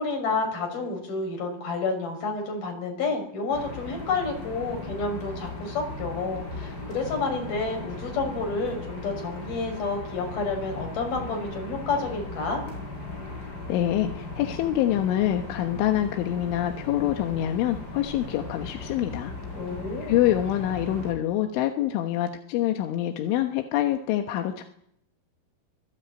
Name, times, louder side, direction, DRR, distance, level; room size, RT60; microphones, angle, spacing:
voice 1, 0.0-12.6 19.5-20.2, left 3 dB, 50° left, 2 dB, 7.7 m, -30 dB
sound 1, 3.5-21.1, left 2 dB, 20° left, 6.9 m, -37 dB
voice 2, 13.7-19.3 20.0-24.6, left 12 dB, 85° left, 5 dB, 3.7 m, -26 dB
25.0 x 19.0 x 8.9 m, 0.74 s
omnidirectional pair, 5.4 m